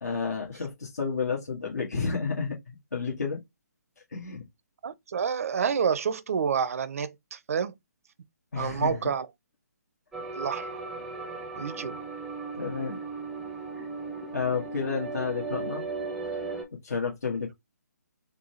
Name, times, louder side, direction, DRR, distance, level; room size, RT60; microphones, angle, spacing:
voice 1, 0.0-3.4 4.1-4.4 8.5-9.0 12.5-13.0 13.8-13.9 14.3-15.8 16.8-17.5, left 5 dB, 65° left, 1.4 m, -31 dB
voice 2, 4.8-7.7 8.6-9.3 10.3-10.8 11.6-12.0, right 7 dB, 55° right, 0.5 m, -28 dB
sound 1, 10.1-16.6, right 4 dB, 5° right, 0.6 m, -36 dB
4.0 x 2.2 x 3.1 m
figure-of-eight pair, 140°, 9 cm